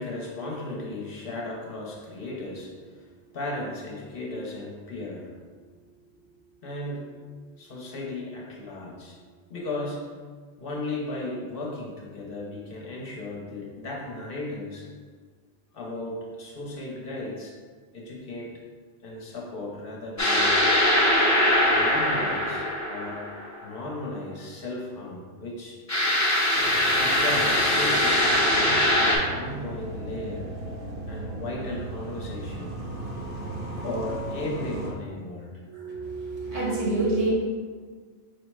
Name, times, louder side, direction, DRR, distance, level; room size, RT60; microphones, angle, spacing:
voice 1, 0.0-5.5 5.8-6.3 6.6-7.3 7.6-9.2 9.5-10.1 10.6-14.9 15.7-17.5 17.9-18.5 19.0-20.5 21.7-23.3 23.6-25.8 26.9-30.5 31.1-32.8 33.8-35.5, left 2 dB, 60° left, -2 dB, 0.9 m, -36 dB
sound 1, 20.2-23.6 25.9-29.2, left 1 dB, 20° left, 0.5 m, -22 dB
sound 2, 26.5-34.9, right 2 dB, 55° right, 0.9 m, -36 dB
voice 2, 35.7-37.3, right 2 dB, 80° right, -6 dB, 1.6 m, -27 dB
4.6 x 2.1 x 4.5 m, 1.6 s
omnidirectional pair, 1.1 m